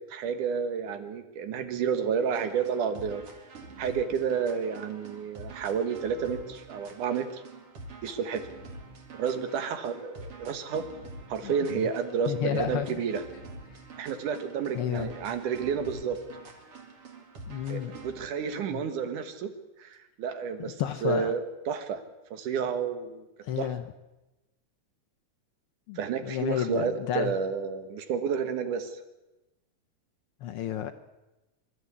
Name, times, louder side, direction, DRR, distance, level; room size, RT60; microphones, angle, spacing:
voice 1, 0.1-3.2 3.8-7.4 8.0-8.4 9.1-10.8 11.3-13.2 14.0-16.2 17.7-19.5 19.8-22.0 22.3-23.2 23.6-23.7 26.0-29.0, right 6 dB, 80° right, 9 dB, 3.0 m, -30 dB
sound 1, 2.2-18.4, right 3 dB, 50° right, 3.1 m, -46 dB
voice 2, 11.4-11.9 12.3-12.9 14.7-15.1 17.5-17.9 18.7-18.8 20.6-21.3 23.4-23.8 25.9-27.3 30.4-30.9, left 10 dB, 75° left, 7 dB, 1.3 m, -31 dB
26.5 x 12.5 x 8.4 m, 1.0 s
omnidirectional pair, 3.5 m